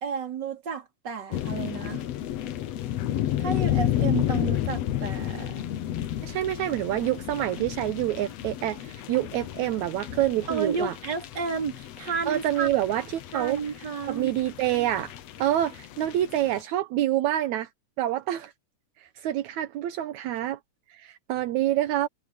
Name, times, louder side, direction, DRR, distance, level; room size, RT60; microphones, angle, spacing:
voice 1, 0.0-2.0 3.4-5.6 10.5-12.7 13.3-14.3, right 5 dB, 35° right, 3.3 m, -32 dB
sound 1, 1.3-16.6, left 12 dB, 65° left, 2.0 m, -32 dB
voice 2, 6.2-11.0 12.3-13.6 14.1-15.1 15.4-17.7 18.0-18.5 19.0-20.6 20.9-22.1, right 13 dB, 75° right, 2.2 m, -27 dB
omnidirectional pair, 3.4 m